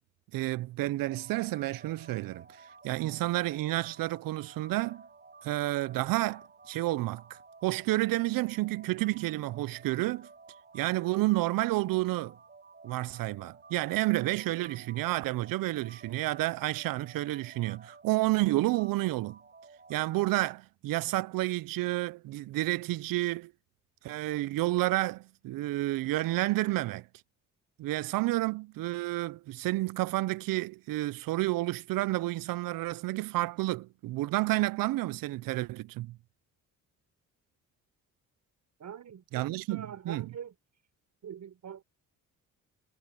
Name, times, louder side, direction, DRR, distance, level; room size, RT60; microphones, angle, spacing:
voice 1, 0.3-2.5 2.8-5.0 5.4-10.3 10.7-12.4 12.8-19.4 19.9-23.5 24.0-27.1 27.8-36.2 39.3-40.3, right 18 dB, 80° right, 0.6 m, -30 dB
sound 1, 1.0-20.3, right 4 dB, 30° right, 7.3 m, -54 dB
voice 2, 38.8-40.5 41.2-41.8, right 8 dB, 60° right, 5.2 m, -44 dB
cardioid pair, 85°, 33 cm